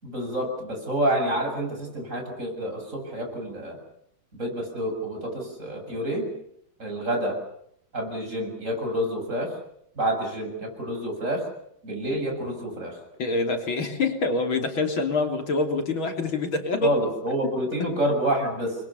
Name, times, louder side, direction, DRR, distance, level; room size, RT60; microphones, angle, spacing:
voice 1, 0.0-3.8 4.3-6.3 6.8-7.4 7.9-9.5 10.0-11.4 11.8-13.0 16.8-18.8, right 1 dB, 40° right, 3 dB, 7.6 m, -28 dB
voice 2, 13.2-17.0 17.4-17.5, left 3 dB, 85° left, 5 dB, 4.0 m, -26 dB
29.5 x 23.0 x 7.1 m, 0.73 s
omnidirectional pair, 2.1 m